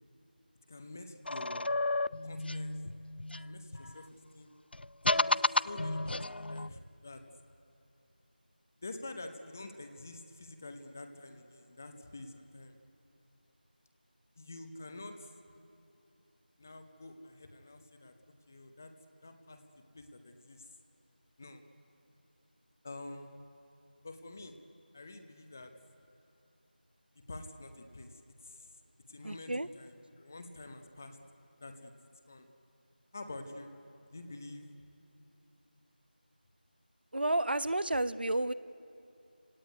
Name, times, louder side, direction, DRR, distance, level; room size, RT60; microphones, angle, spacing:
voice 1, 0.7-1.7 2.2-2.7 3.4-4.1 4.3-4.5 5.1-7.2 8.8-12.8 14.4-15.3 16.6-18.1 18.5-18.9 19.2-20.7 21.4-21.6 22.8-23.3 24.0-24.6 24.9-25.7 27.1-28.7 29.1-31.2 31.6-31.9 32.3-32.5 33.1-33.7 34.1-34.7, left 2 dB, 15° left, 7 dB, 0.8 m, -47 dB
sound 1, 1.3-4.0 4.7-6.7, left 2 dB, 90° left, 0.5 m, -32 dB
voice 2, 29.2-29.7 37.1-38.5, right 1 dB, 70° right, 15 dB, 0.9 m, -31 dB
29.0 x 18.0 x 9.4 m, 2.9 s
figure-of-eight pair, 175°, 5 cm